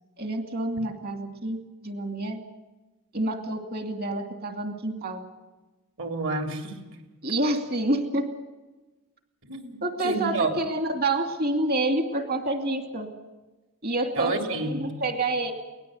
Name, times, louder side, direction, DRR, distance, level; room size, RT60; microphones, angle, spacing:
voice 1, 0.2-1.6 1.8-2.4 3.1-5.2 7.2-8.3 9.8-13.1 13.8-15.5, right 2 dB, 45° right, 6 dB, 2.6 m, -28 dB
voice 2, 6.0-6.8 9.4-9.8 10.0-10.5 14.2-14.9, right 3 dB, 60° right, 5 dB, 3.4 m, -29 dB
23.0 x 18.5 x 7.9 m, 1.2 s
head